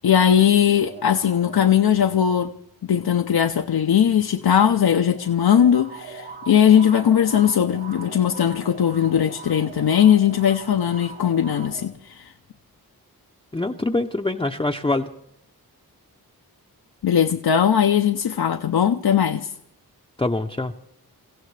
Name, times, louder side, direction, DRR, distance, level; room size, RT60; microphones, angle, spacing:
voice 1, 0.0-2.5 2.8-12.3 17.0-19.5, left 9 dB, 75° left, 0.6 m, -19 dB
sound 1, 0.8-2.5 3.8-11.9, right 4 dB, 75° right, 2.3 m, -41 dB
voice 2, 13.5-15.1 20.2-20.7, left 2 dB, 15° left, 0.6 m, -24 dB
28.5 x 15.5 x 3.2 m
wide cardioid pair, 80°, 38 cm